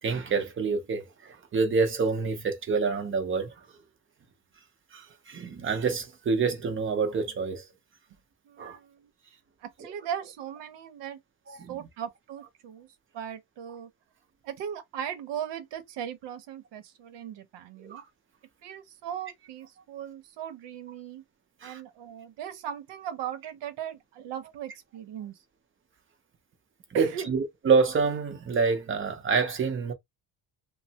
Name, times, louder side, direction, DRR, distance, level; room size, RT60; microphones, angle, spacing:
voice 1, 0.0-3.5 4.9-7.7 8.6-8.8 11.6-11.8 17.8-18.0 21.6-21.8 26.9-29.9, right 5 dB, 30° right, 0.6 m, -27 dB
voice 2, 8.4-9.1 9.6-11.2 11.5-12.9 13.1-13.9 14.4-18.0 18.6-21.2 21.6-25.4 26.9-27.3, right 9 dB, 80° right, 0.8 m, -38 dB
3.1 x 2.0 x 2.7 m
cardioid pair, 155°, 41 cm